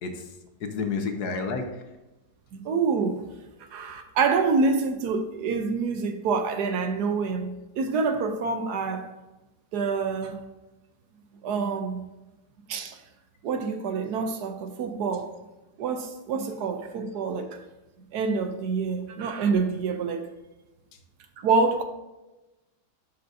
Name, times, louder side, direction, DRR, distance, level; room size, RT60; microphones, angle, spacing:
voice 1, 0.0-1.9 20.9-21.0, left 4 dB, 70° left, 6 dB, 1.4 m, -31 dB
voice 2, 2.5-3.3 3.7-9.1 9.7-10.4 11.4-12.0 12.7-13.0 13.4-15.3 15.8-17.6 18.1-20.3 21.4-21.8, right 4 dB, 75° right, 7 dB, 1.3 m, -27 dB
11.0 x 5.1 x 2.7 m, 1.0 s
omnidirectional pair, 1.8 m